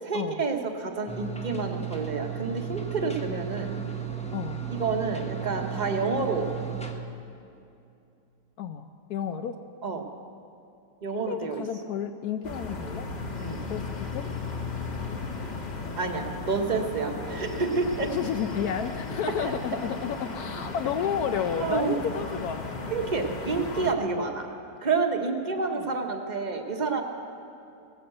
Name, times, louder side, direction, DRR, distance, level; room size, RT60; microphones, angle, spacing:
voice 1, 0.0-3.7 4.7-6.5 9.8-10.0 11.0-11.6 13.4-13.6 16.0-18.1 19.4-19.6 21.6-22.0 22.9-24.5 24.8-27.0, right 4 dB, 30° right, 4 dB, 1.0 m, -29 dB
sound 1, 1.1-6.9, right 8 dB, 5° left, 0.5 m, -34 dB
voice 2, 4.3-4.6 8.6-9.6 11.3-13.1 13.7-14.3 18.0-22.7 25.7-25.9, left 8 dB, 75° left, 8 dB, 1.1 m, -31 dB
sound 2, 12.4-23.9, left 3 dB, 30° left, 1.0 m, -35 dB
17.0 x 9.4 x 7.8 m, 2.6 s
omnidirectional pair, 1.7 m